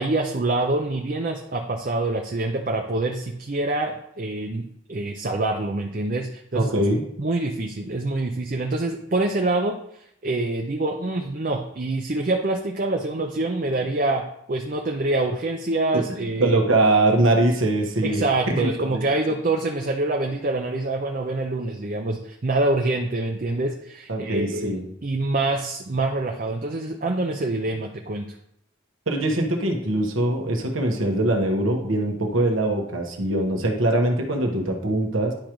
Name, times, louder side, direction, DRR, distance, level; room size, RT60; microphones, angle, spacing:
voice 1, 0.0-6.7 7.2-9.8 10.2-16.6 18.0-28.3, right 2 dB, 40° right, 2 dB, 0.5 m, -26 dB
voice 2, 6.5-7.0 15.9-18.2 18.6-19.4 24.1-24.9 29.1-35.3, right 1 dB, 80° right, 2 dB, 1.3 m, -22 dB
10.5 x 5.1 x 3.1 m, 0.75 s
head